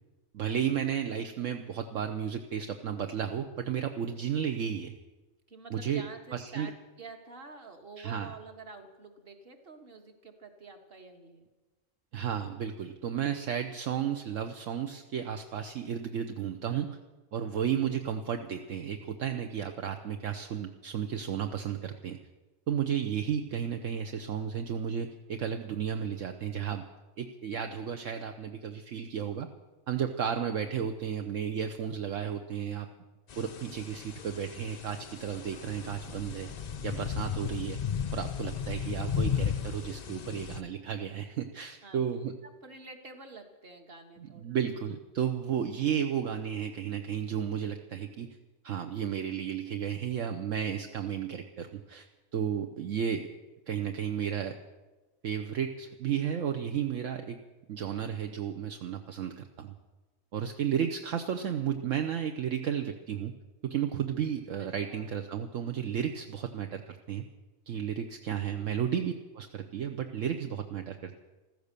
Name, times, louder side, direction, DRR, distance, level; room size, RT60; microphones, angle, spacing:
voice 1, 0.3-4.9 5.7-6.0 6.3-6.7 8.0-8.3 12.1-17.0 17.3-22.2 22.7-26.8 27.2-29.5 29.9-32.9 33.4-36.5 36.8-37.8 38.1-42.3 44.2-48.4 48.6-52.1 52.3-53.3 53.7-54.6 55.2-57.4 57.7-59.7 60.3-63.3 63.6-67.2 67.7-71.2, right 8 dB, 70° right, 5 dB, 1.2 m, -33 dB
voice 2, 5.5-11.5 41.8-42.2 42.6-44.5 64.6-65.1 68.4-68.7, right 3 dB, 45° right, 4 dB, 1.8 m, -48 dB
sound 1, 33.3-40.6, left 8 dB, 55° left, 0.4 m, -35 dB
15.5 x 13.5 x 6.7 m, 1.2 s
omnidirectional pair, 1.4 m